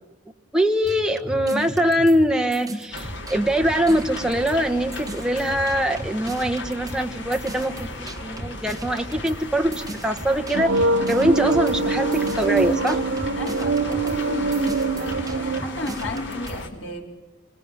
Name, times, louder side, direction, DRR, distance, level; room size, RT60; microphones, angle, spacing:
voice 1, 0.5-13.0, right 1 dB, 5° right, 1.1 m, -23 dB
sound 1, 0.8-4.7 4.9-16.6, right 1 dB, 20° right, 2.0 m, -37 dB
sound 2, 2.9-16.7, left 2 dB, 65° left, 2.9 m, -36 dB
sound 3, 10.5-15.6, right 3 dB, 90° right, 1.1 m, -23 dB
voice 2, 13.3-17.2, left 1 dB, 90° left, 4.2 m, -34 dB
27.5 x 19.5 x 7.3 m
head